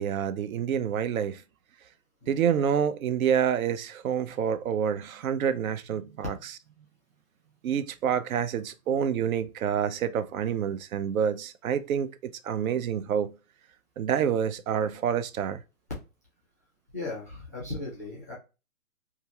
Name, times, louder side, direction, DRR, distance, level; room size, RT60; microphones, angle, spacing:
voice 1, 0.0-1.4 2.3-6.5 7.6-13.3 14.0-15.6, right 8 dB, 75° right, 0.5 m, -28 dB
voice 2, 16.9-18.3, left 2 dB, 15° left, 0.3 m, -37 dB
2.8 x 2.4 x 2.8 m
hypercardioid pair, 145°, 43 cm